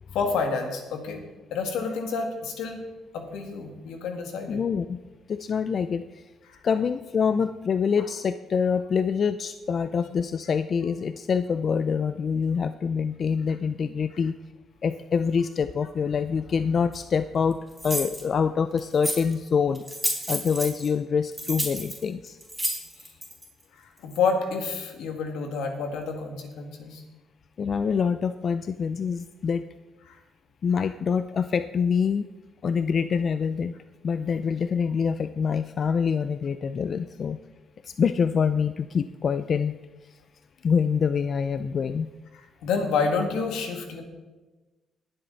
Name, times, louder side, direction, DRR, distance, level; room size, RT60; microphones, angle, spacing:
voice 1, 0.1-1.2 1.5-2.8 3.1-4.6 6.5-6.6 24.0-27.0 30.1-30.2 42.6-44.0, left 4 dB, 90° left, 4 dB, 2.1 m, -28 dB
voice 2, 4.5-5.0 5.3-6.2 6.6-14.3 14.8-17.6 17.8-19.8 20.3-22.4 27.6-29.6 30.6-32.3 32.6-33.7 34.0-37.4 37.8-39.8 40.6-42.1, left 6 dB, 50° left, 11 dB, 0.4 m, -25 dB
sound 1, 16.9-17.0 17.8-18.2 18.8-19.3 19.7-20.9 21.3-23.4, right 1 dB, 5° right, 4.0 m, -30 dB
20.0 x 7.8 x 4.0 m, 1.2 s
cardioid pair, 90°, 0 cm